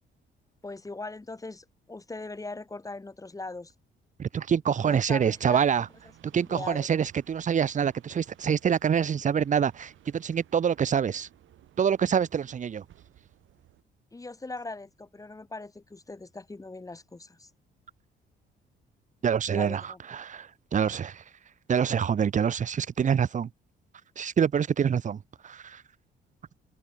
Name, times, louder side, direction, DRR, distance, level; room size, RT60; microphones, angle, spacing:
voice 1, 0.6-3.7 4.8-5.6 6.3-6.9 14.1-17.5 19.5-20.0, left 3 dB, 15° left, 1.6 m, -40 dB
voice 2, 4.2-5.9 6.2-11.3 11.8-12.8 19.2-21.2 21.7-23.5 24.2-25.8, right 7 dB, 40° right, 0.7 m, -26 dB
sound 1, 4.7-13.8, right 12 dB, 75° right, 3.7 m, -58 dB
cardioid pair, 90°, 20 cm